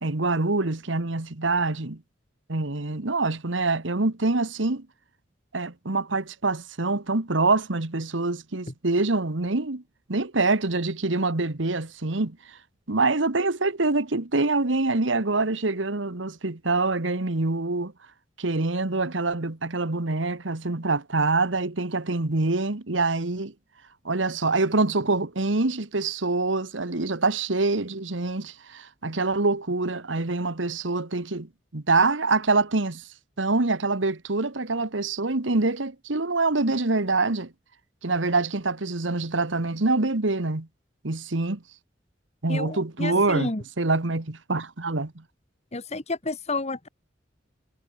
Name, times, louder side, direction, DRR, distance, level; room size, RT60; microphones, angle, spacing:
voice 1, 0.0-2.0 2.5-4.9 5.5-9.8 10.1-12.4 12.9-17.9 18.4-23.5 24.0-33.1 33.4-37.5 38.0-40.7 41.0-41.6 42.4-43.5 43.8-45.2, right 3 dB, 85° right, 1.6 m, -25 dB
voice 2, 42.5-43.6 45.7-46.9, left 2 dB, 35° left, 1.8 m, -31 dB
head